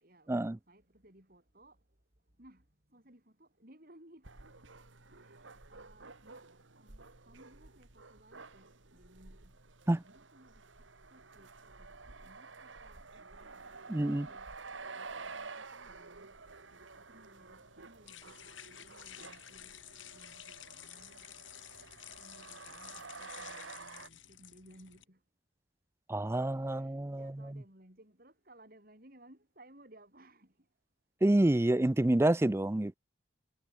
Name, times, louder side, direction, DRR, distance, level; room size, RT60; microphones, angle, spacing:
voice 1, 0.0-1.8 2.4-4.3 5.1-6.5 6.8-9.5 10.0-11.9 12.2-13.8 14.1-14.6 15.0-16.4 16.7-21.3 22.2-25.2 26.7-30.7, right 1 dB, 50° right, 5.4 m, -61 dB
sound 1, 4.2-24.1, right 4 dB, 80° right, 2.4 m, -50 dB
voice 2, 13.9-14.3 26.1-27.3 31.2-33.0, right 1 dB, 15° right, 0.4 m, -28 dB
sound 2, 16.4-25.0, left 11 dB, 80° left, 2.9 m, -52 dB
head